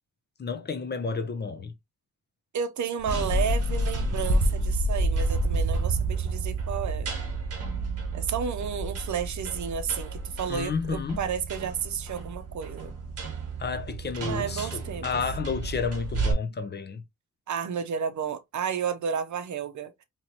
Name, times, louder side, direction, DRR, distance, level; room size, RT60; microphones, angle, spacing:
voice 1, 0.4-1.7 10.5-11.2 13.6-17.0, left 5 dB, 35° left, 0.6 m, -31 dB
voice 2, 2.5-7.1 8.1-12.9 14.2-15.1 17.5-19.9, right 7 dB, 65° right, 0.7 m, -31 dB
sound 1, 3.0-16.3, right 2 dB, 50° right, 1.5 m, -30 dB
4.5 x 3.0 x 2.8 m
wide cardioid pair, 165°, 31 cm